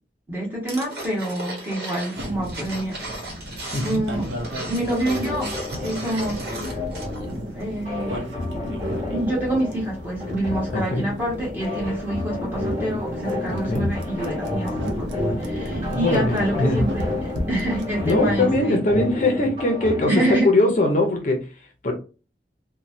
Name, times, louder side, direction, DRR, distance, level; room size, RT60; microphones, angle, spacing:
voice 1, 0.3-3.0 3.8-4.3 4.7-5.5 5.8-6.5 7.4-8.2 9.1-18.8 20.1-20.5, right 1 dB, 10° right, -4 dB, 1.2 m, -27 dB
bottle of coins, 0.7-7.3 7.6-7.7, right 2 dB, 60° right, 1.2 m, -36 dB
sound 1, 2.2-18.4, equal, 90° right, 0.6 m, -34 dB
voice 2, 3.7-4.1 8.9-9.0 10.7-11.0 13.5-13.8 15.9-17.0 18.0-21.9, left 2 dB, 45° left, 3 dB, 0.6 m, -22 dB
sound 2, 5.0-20.0, left 2 dB, 30° right, 1.6 m, -31 dB
3.1 x 2.2 x 2.6 m, 0.33 s
head